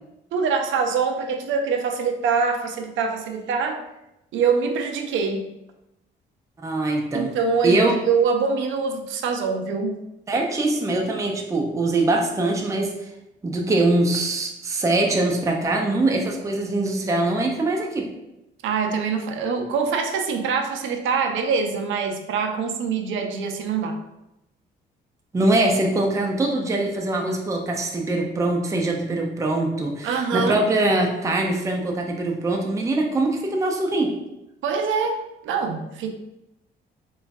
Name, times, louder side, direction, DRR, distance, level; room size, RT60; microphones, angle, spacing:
voice 1, 0.3-3.8 4.3-5.5 7.1-10.0 18.6-24.0 30.0-30.6 34.6-36.1, right 5 dB, 75° right, 5 dB, 0.4 m, -24 dB
voice 2, 6.6-7.3 7.6-7.9 10.3-13.1 13.4-18.1 25.3-34.2, right 2 dB, 15° right, 1 dB, 0.4 m, -23 dB
3.0 x 2.3 x 2.5 m, 0.89 s
cardioid pair, 90°, 20 cm